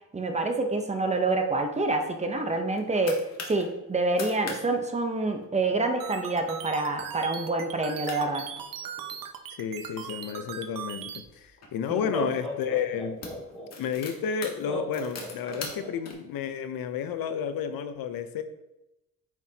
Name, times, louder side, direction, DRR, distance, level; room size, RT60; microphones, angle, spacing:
voice 1, 0.1-8.5 11.9-12.1, right 2 dB, 20° right, 5 dB, 0.7 m, -27 dB
sound 1, 2.5-3.6 4.0-4.6 4.9-5.0 5.3-5.7 6.2-6.5 6.9-7.0 7.7-7.8 8.0-9.2 9.8-11.7 12.5-12.6 13.0-16.1, left 3 dB, 45° left, 1.5 m, -42 dB
sound 2, 6.0-11.2, right 8 dB, 70° right, 0.8 m, -39 dB
voice 2, 9.5-13.2 13.8-18.4, left 7 dB, 85° left, 10 dB, 0.7 m, -31 dB
Laughter, 11.3-11.4 11.9-13.7 14.7-15.9, equal, ahead, 2.6 m, -35 dB
9.1 x 5.8 x 2.8 m, 0.93 s
cardioid pair, 150°, 34 cm